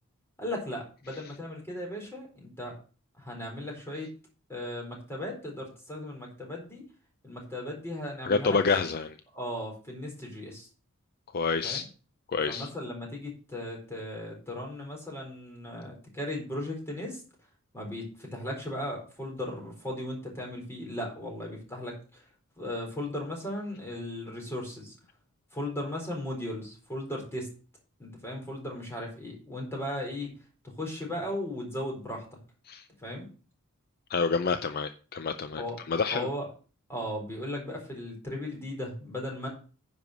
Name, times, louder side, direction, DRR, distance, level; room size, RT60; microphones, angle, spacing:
voice 1, 0.4-2.8 3.2-4.1 4.5-6.8 7.2-8.6 9.3-10.7 11.6-11.8 12.5-17.2 17.7-22.2 22.6-24.9 25.5-27.5 28.0-30.3 30.6-32.2 33.0-33.3 35.6-35.8 36.1-36.5 36.9-39.5, left 1 dB, 10° left, 4.0 m, -36 dB
voice 2, 8.2-9.2 11.3-11.9 12.3-12.7 32.6-32.9 34.1-36.3, left 4 dB, 45° left, 0.5 m, -28 dB
10.0 x 5.1 x 6.5 m
head